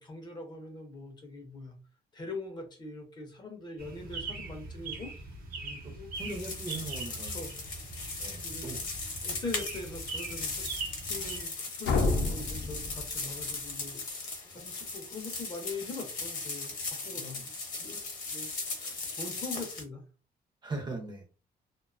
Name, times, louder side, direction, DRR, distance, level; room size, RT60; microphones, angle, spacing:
voice 1, 0.0-1.7 2.1-5.1 5.9-6.1 7.3-7.5 8.4-8.7 9.2-10.7 11.0-17.4 17.8-18.0 18.3-18.5 18.8-20.0, left 2 dB, 25° left, 3 dB, 0.5 m, -42 dB
sound 1, 3.8-11.4, right 3 dB, 60° right, 0.7 m, -41 dB
voice 2, 5.6-5.9 6.2-7.4 8.1-8.8 14.4-14.6 17.1-17.4 20.6-21.3, right 2 dB, 25° right, 3 dB, 0.5 m, -40 dB
sound 2, 6.2-19.8, left 3 dB, 55° left, 0.8 m, -38 dB
sound 3, 11.8-13.7, left 3 dB, 85° left, 0.5 m, -30 dB
2.5 x 2.2 x 2.3 m, 0.35 s
cardioid pair, 170°, 17 cm